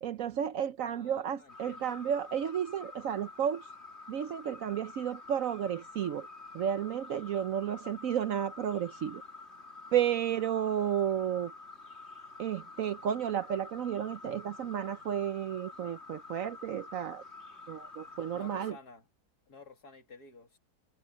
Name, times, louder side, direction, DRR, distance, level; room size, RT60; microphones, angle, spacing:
voice 1, 0.0-3.7 4.1-6.3 6.5-9.2 9.9-11.5 12.4-17.2 17.7-18.7, right 9 dB, 65° right, 1.0 m, -32 dB
voice 2, 0.9-2.0 18.3-19.1 19.5-20.6, left 4 dB, 70° left, 3.2 m, -52 dB
sound 1, 1.5-18.7, left 3 dB, 40° left, 3.3 m, -49 dB
omnidirectional pair, 1.8 m